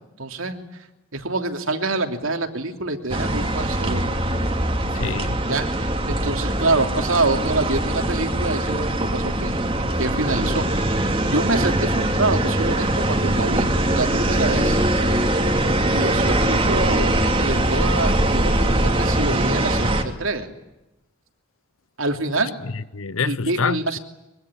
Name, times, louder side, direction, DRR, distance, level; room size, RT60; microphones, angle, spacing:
voice 1, 0.2-0.6 1.1-4.0 5.5-10.6 10.9-14.8 15.9-20.5 22.0-22.6 23.3-24.0, right 2 dB, 75° right, 3.1 m, -26 dB
sound 1, 3.1-20.0, right 1 dB, 25° right, 2.5 m, -22 dB
voice 2, 4.8-5.4 16.4-16.5 22.6-24.0, left 4 dB, 75° left, 0.9 m, -27 dB
24.0 x 23.5 x 9.9 m
head